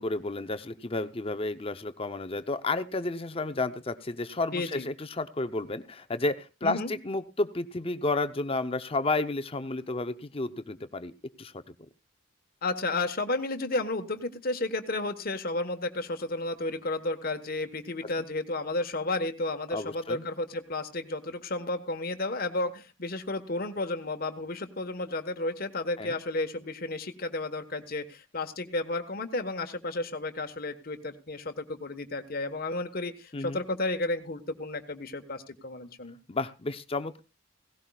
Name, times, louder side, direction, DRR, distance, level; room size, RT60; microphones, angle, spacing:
voice 1, 0.0-11.1 11.4-11.7 19.7-20.2 26.0-26.2 33.3-33.6 36.3-37.2, left 2 dB, 30° left, 10 dB, 0.7 m, -31 dB
voice 2, 4.5-4.9 6.6-6.9 12.6-36.2, left 2 dB, 50° left, 7 dB, 1.3 m, -32 dB
17.5 x 17.0 x 2.4 m, 0.29 s
head